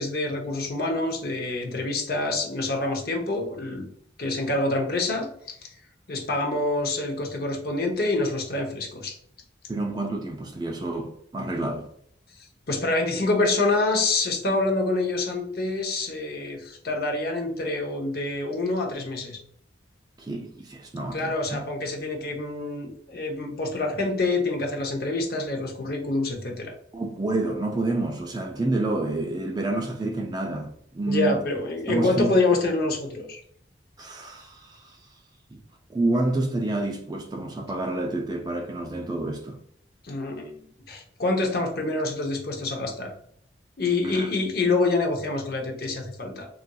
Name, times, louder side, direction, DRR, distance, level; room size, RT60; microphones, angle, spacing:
voice 1, 0.0-3.9 4.2-5.7 6.1-9.2 12.4-19.4 21.1-26.7 31.1-33.4 40.0-40.6 40.9-43.1 43.8-46.5, left 2 dB, 50° left, 0.7 m, -26 dB
voice 2, 9.7-11.9 20.2-21.6 26.9-31.4 31.9-32.3 34.0-35.0 35.5-35.6 35.9-39.6 44.0-44.3, right 2 dB, 20° right, 0.3 m, -28 dB
3.9 x 2.5 x 2.2 m
head